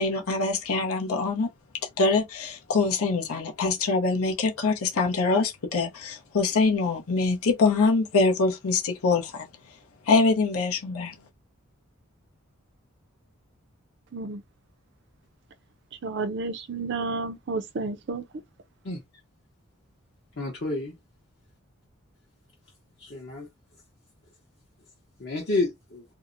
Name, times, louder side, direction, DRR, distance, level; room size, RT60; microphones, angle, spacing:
voice 1, 0.0-1.5 2.0-9.5 10.1-11.1, left 3 dB, 85° left, 0.7 m, -24 dB
voice 2, 16.0-18.2, right 3 dB, 55° right, 0.4 m, -31 dB
voice 3, 20.4-20.9 23.0-23.5 25.2-26.0, left 2 dB, 50° left, 0.8 m, -29 dB
2.6 x 2.0 x 2.5 m
head